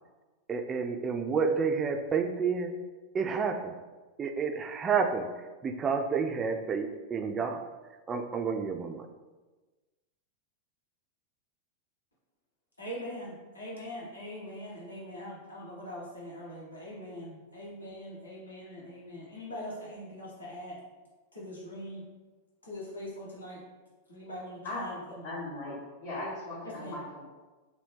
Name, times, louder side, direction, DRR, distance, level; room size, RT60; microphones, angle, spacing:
voice 1, 0.5-2.7 3.1-3.8 4.2-7.6 8.1-9.1, right 5 dB, 20° right, 6 dB, 0.3 m, -30 dB
voice 2, 12.8-20.8 21.3-22.0 22.6-23.6 24.1-25.3 26.6-27.0, equal, 80° left, -6 dB, 1.0 m, -42 dB
voice 3, 24.6-25.0 25.2-27.2, left 2 dB, 60° left, -9 dB, 1.0 m, -38 dB
2.7 x 2.7 x 3.2 m, 1.3 s
figure-of-eight pair, 90°, 0 cm